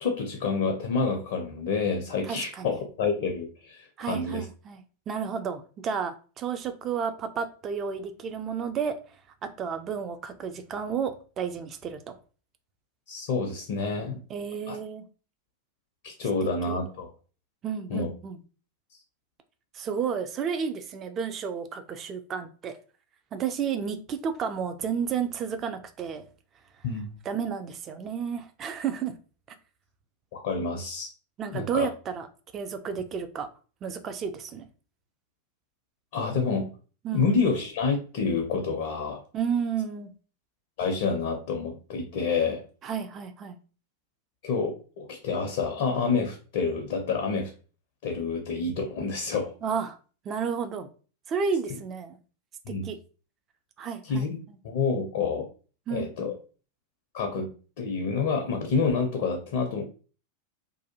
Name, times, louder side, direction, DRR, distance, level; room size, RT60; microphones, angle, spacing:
voice 1, 0.0-4.4 13.1-14.2 14.7-14.8 16.0-17.1 17.9-18.1 26.8-27.1 30.3-31.1 31.5-31.9 36.1-36.7 37.1-39.2 40.8-42.6 44.4-47.5 48.0-49.5 51.7-51.8 52.7-52.9 54.0-54.4 54.6-55.5 55.9-56.3 57.1-57.5 57.8-59.8, left 4 dB, 55° left, 3 dB, 0.5 m, -28 dB
voice 2, 2.3-2.8 4.0-9.0 9.4-12.2 14.3-15.0 16.7-16.8 17.6-18.4 19.7-22.8 23.3-26.3 27.3-29.1 31.4-32.3 32.5-33.5 33.8-34.7 37.0-37.3 39.3-40.1 42.8-43.6 49.6-50.0 50.3-50.9 51.3-52.2 52.8-53.0 53.8-54.3 55.9-56.3, right 6 dB, 30° right, 8 dB, 0.3 m, -32 dB
2.5 x 2.2 x 2.7 m, 0.38 s
figure-of-eight pair, 90°, 0 cm